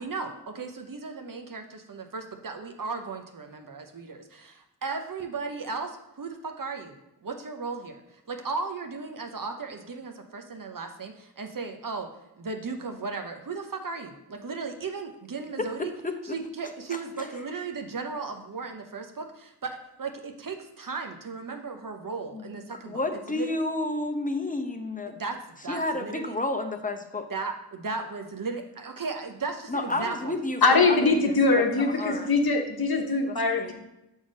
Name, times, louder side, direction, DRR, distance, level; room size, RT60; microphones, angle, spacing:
voice 1, 0.0-7.0 7.2-12.1 12.4-15.9 16.2-23.6 25.1-25.3 25.6-26.4 27.3-30.3, right 4 dB, 55° right, 5 dB, 0.8 m, -36 dB
voice 2, 15.6-16.1 22.3-22.5 22.8-25.1 25.7-27.3 29.7-31.0 31.2-32.3 33.3-33.7, left 2 dB, 20° left, 6 dB, 0.8 m, -31 dB
voice 3, 30.6-33.7, left 3 dB, 65° left, 3 dB, 1.0 m, -22 dB
7.0 x 3.6 x 5.3 m, 0.89 s
wide cardioid pair, 65°, 40 cm